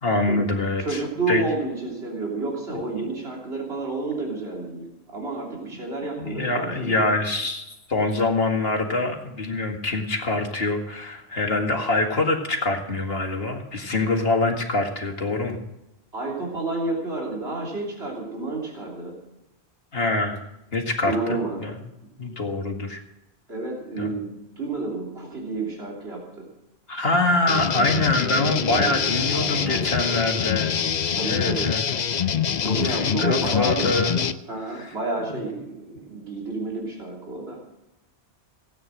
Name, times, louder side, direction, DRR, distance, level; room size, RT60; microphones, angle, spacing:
voice 1, 0.0-1.0 1.3-1.4 2.7-2.8 6.2-15.6 19.9-20.4 20.7-21.7 22.2-23.0 24.0-24.1 26.9-30.7 31.2-31.8 32.7-34.2 34.7-34.9, left 2 dB, 65° left, 3 dB, 2.2 m, -25 dB
voice 2, 0.8-7.1 16.1-19.2 21.0-21.6 23.5-26.5 28.2-30.2 31.2-31.7 32.6-37.6, right 3 dB, 75° right, -2 dB, 3.5 m, -30 dB
sound 1, 27.5-34.3, left 7 dB, 50° left, 0.7 m, -25 dB
17.0 x 9.2 x 6.5 m, 0.93 s
omnidirectional pair, 1.1 m